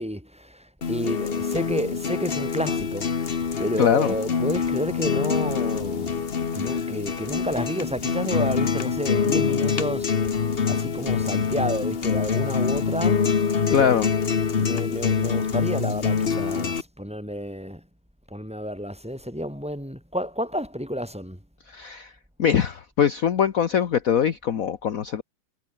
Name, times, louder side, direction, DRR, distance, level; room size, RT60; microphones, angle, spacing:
voice 1, 0.0-3.2 3.6-6.2 6.5-14.0 14.5-17.9 18.3-21.4, equal, 5° right, 4.7 m, -30 dB
sound 1, 0.8-16.8, left 6 dB, 35° left, 1.2 m, -25 dB
voice 2, 3.8-4.1 6.7-6.8 13.7-14.1 21.7-22.1 22.4-25.2, left 8 dB, 50° left, 1.4 m, -22 dB
omnidirectional pair, 2.0 m